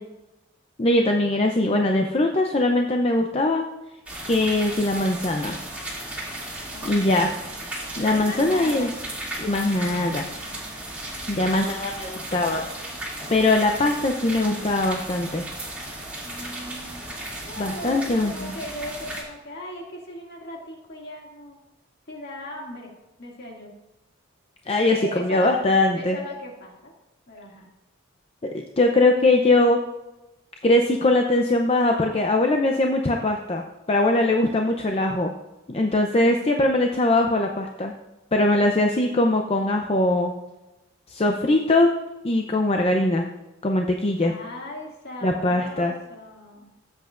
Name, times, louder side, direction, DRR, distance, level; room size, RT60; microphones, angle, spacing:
voice 1, 0.8-3.7 4.3-5.6 6.8-7.3 7.9-8.9 9.4-10.3 11.3-12.6 13.3-15.5 17.6-18.5 24.7-26.2 28.5-29.8 30.6-35.3 35.7-37.9 38.3-40.3 41.1-41.9 42.2-43.3 43.6-44.3 45.2-45.9, left 2 dB, 30° left, 2 dB, 0.6 m, -21 dB
sound 1, 4.1-19.2, right 1 dB, 5° right, 2.5 m, -35 dB
voice 2, 6.7-7.5 8.1-9.0 11.3-12.2 16.2-17.1 17.4-21.6 22.1-22.9 23.2-23.7 24.9-25.5 26.0-26.9 27.3-27.7 38.5-38.7 44.2-46.7, left 1 dB, 50° left, -1 dB, 2.3 m, -38 dB
15.5 x 7.9 x 2.5 m, 0.99 s
head